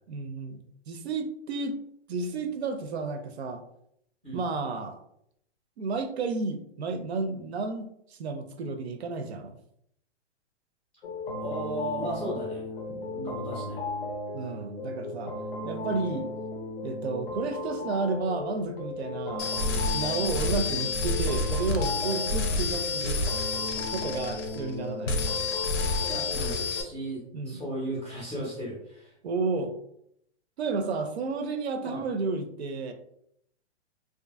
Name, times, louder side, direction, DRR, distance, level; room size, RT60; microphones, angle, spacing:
voice 1, 0.1-1.8 2.1-3.6 4.3-5.0 5.8-7.9 8.2-9.6 12.9-13.2 14.3-15.4 15.6-16.3 16.8-23.2 23.9-25.2 27.3-27.6 29.2-29.7 30.6-32.9, right 4 dB, 65° right, 7 dB, 0.5 m, -32 dB
sound 1, 11.0-26.9, left 2 dB, 55° left, 0.5 m, -36 dB
voice 2, 11.4-12.7 13.1-13.8 26.1-29.1 31.8-32.0, right 1 dB, 10° left, -8 dB, 0.5 m, -35 dB
sound 2, 19.4-24.8 25.1-26.8, left 3 dB, 85° left, 0.7 m, -29 dB
2.5 x 2.5 x 2.4 m, 0.72 s
hypercardioid pair, 170°, 35 cm